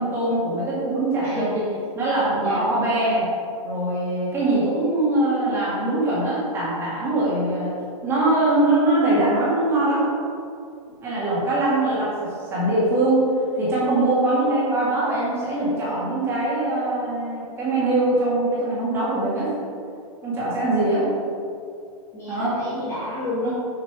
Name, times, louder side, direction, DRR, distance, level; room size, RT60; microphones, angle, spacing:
voice 1, 0.0-1.5 2.0-3.3 3.6-10.1 11.0-13.3 13.6-19.5 20.2-21.0 22.3-22.6 23.4-23.5, right 2 dB, 15° right, -9 dB, 2.1 m, -22 dB
voice 2, 1.2-1.8 2.4-2.7 11.4-11.5 20.8-21.2 22.1-23.5, left 1 dB, 15° left, -9 dB, 2.0 m, -30 dB
8.1 x 5.8 x 4.8 m, 2.5 s
hypercardioid pair, 165°, 18 cm